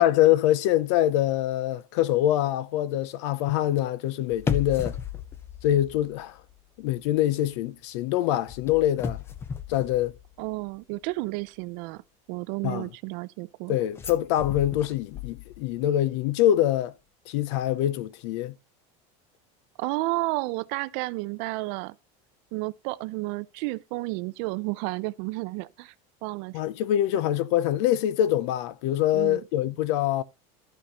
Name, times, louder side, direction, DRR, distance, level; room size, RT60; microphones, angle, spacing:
voice 1, 0.0-5.0 5.6-6.4 6.8-9.2 9.7-10.2 12.6-12.9 13.7-16.9 17.3-18.5 26.5-30.2, left 12 dB, 60° left, 0.7 m, -24 dB
sound 1, 4.3-6.6 6.9-7.2 8.5-10.7 14.0-15.9 16.1-16.2, left 7 dB, 15° left, 0.5 m, -35 dB
voice 2, 10.4-12.0 12.3-13.8 19.8-22.0 22.5-25.9 26.2-26.6 29.1-29.4, right 22 dB, 50° right, 0.5 m, -31 dB
13.0 x 5.8 x 4.1 m
cardioid pair, 175°, 17 cm